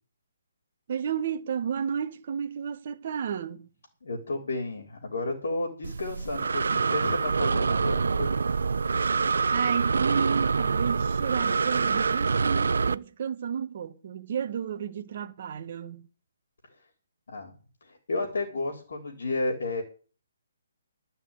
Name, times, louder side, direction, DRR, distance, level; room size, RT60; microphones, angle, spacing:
voice 1, 0.9-3.7 9.5-16.1, right 7 dB, 30° right, 1.1 m, -32 dB
voice 2, 4.0-8.3 17.3-17.5 17.8-19.8, left 2 dB, 55° left, 3.6 m, -32 dB
Breathing, 5.8-12.9, right 5 dB, 65° right, 0.6 m, -26 dB
13.0 x 5.6 x 8.9 m
hypercardioid pair, 180°, 0 cm